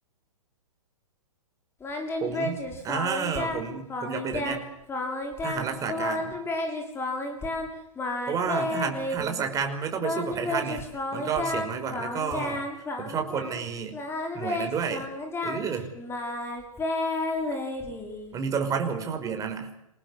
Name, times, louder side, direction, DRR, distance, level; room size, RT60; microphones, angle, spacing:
Singing, 1.8-3.6 3.9-4.6 4.9-7.7 8.0-9.4 10.0-13.6 13.9-18.3, left 2 dB, 15° left, 6.8 m, -31 dB
voice 1, 2.2-4.6 5.4-6.4 8.3-10.8 11.1-12.6 13.0-13.9 14.3-15.1 15.4-15.9 18.3-19.7, right 6 dB, 20° right, 6 dB, 5.5 m, -30 dB
27.5 x 19.0 x 8.5 m, 0.82 s
hypercardioid pair, 135°, 18 cm